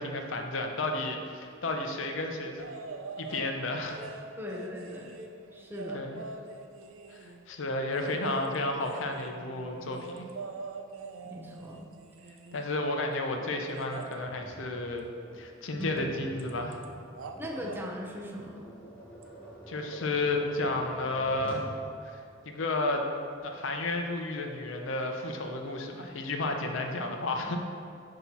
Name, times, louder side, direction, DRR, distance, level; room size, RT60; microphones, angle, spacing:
voice 1, 0.0-2.7 3.2-4.0 5.9-6.2 7.1-10.2 12.5-15.0 15.3-16.8 19.7-21.7 22.0-23.0 23.4-27.6, left 2 dB, 70° left, 3 dB, 0.6 m, -32 dB
sound 1, 2.6-3.5 3.9-7.4 7.9-12.8 13.6-14.1 16.0-16.1 16.4-16.9 17.1-17.8 19.2-19.3, right 3 dB, 90° right, 0.5 m, -43 dB
voice 2, 4.4-5.1 5.5-6.1 11.2-11.9 15.8-16.0 17.3-18.7, equal, 10° right, -1 dB, 0.7 m, -39 dB
Tap, 14.2-21.7, right 1 dB, 5° left, 1.0 m, -47 dB
6.9 x 2.9 x 5.9 m, 2.4 s
head